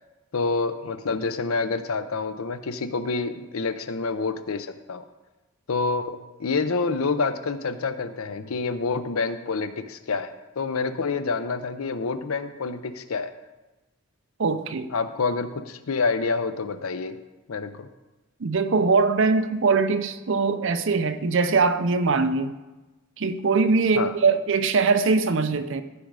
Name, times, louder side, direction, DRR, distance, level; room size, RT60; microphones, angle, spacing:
voice 1, 0.3-5.0 5.7-13.3 14.9-17.2 17.5-17.9 24.0-24.1, left 4 dB, 80° left, 0.6 m, -27 dB
voice 2, 14.4-14.9 18.4-22.6 23.2-25.8, right 4 dB, 60° right, 0.6 m, -22 dB
14.5 x 5.1 x 4.8 m
head